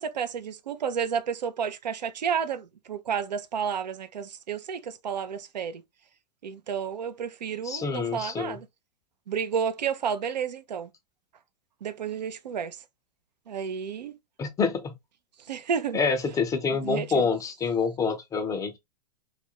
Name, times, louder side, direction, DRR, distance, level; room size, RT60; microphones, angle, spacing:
voice 1, 0.0-5.8 6.4-8.7 9.3-10.9 11.8-12.8 13.5-14.2 15.5-16.0 16.7-17.3, right 7 dB, 85° right, 0.4 m, -31 dB
voice 2, 7.6-8.6 14.4-14.9 15.9-18.8, left 5 dB, 15° left, 0.4 m, -27 dB
2.4 x 2.1 x 2.8 m
hypercardioid pair, 105°, 21 cm